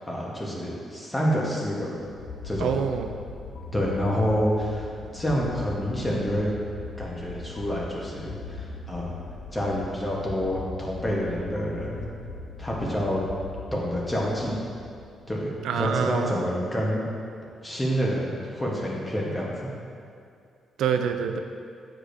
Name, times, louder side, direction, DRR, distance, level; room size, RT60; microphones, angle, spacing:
voice 1, 0.0-2.0 2.4-2.7 3.7-6.5 7.0-9.1 9.5-12.0 12.6-13.2 13.7-14.5 15.3-15.5 15.8-17.0 17.6-19.7, equal, 10° left, -3 dB, 1.0 m, -28 dB
sound 1, 1.9-15.9, left 4 dB, 85° left, 0.5 m, -40 dB
voice 2, 2.6-3.1 15.6-16.4 20.8-21.4, right 7 dB, 85° right, 7 dB, 0.3 m, -26 dB
8.5 x 4.8 x 2.6 m, 2.4 s
cardioid pair, 140°, 0 cm